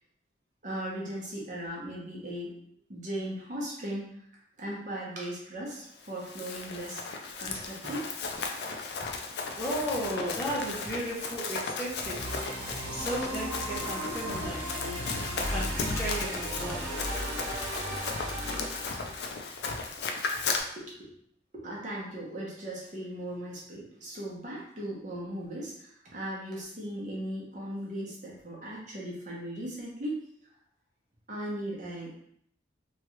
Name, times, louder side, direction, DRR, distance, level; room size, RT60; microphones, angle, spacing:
voice 1, 0.6-2.6 2.9-4.1 4.6-7.0 7.4-8.0 16.8-16.9 20.8-21.1 21.5-30.1 31.3-32.2, right 1 dB, 40° right, -5 dB, 0.8 m, -38 dB
Run, 6.0-20.6, left 4 dB, 60° left, 0.4 m, -35 dB
voice 2, 9.6-12.3 12.9-14.7 15.3-16.9, equal, 10° left, -7 dB, 0.6 m, -34 dB
sound 1, 12.2-19.3, equal, 80° right, 1.0 m, -36 dB
3.0 x 2.3 x 3.0 m, 0.70 s
head